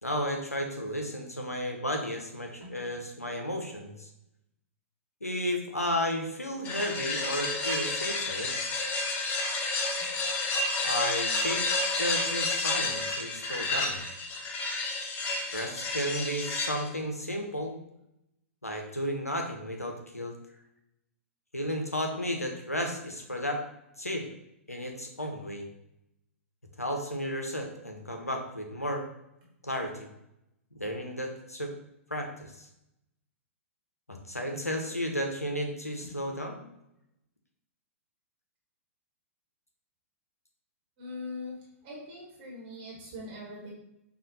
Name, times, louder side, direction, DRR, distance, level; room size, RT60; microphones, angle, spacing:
voice 1, 0.0-4.1 5.2-8.6 10.8-11.7 12.0-14.0 15.5-17.8 18.6-20.3 21.5-23.6 24.0-24.3 24.7-25.7 26.8-29.1 29.6-30.1 30.7-31.7 32.1-32.7 34.1-36.6, equal, 90° left, 3 dB, 0.6 m, -33 dB
sound 1, 6.6-16.9, left 3 dB, 25° left, 0.5 m, -30 dB
voice 2, 41.0-41.5 41.8-43.7, left 2 dB, 40° right, -3 dB, 1.1 m, -41 dB
4.9 x 2.4 x 2.6 m, 0.85 s
figure-of-eight pair, 105°, 8 cm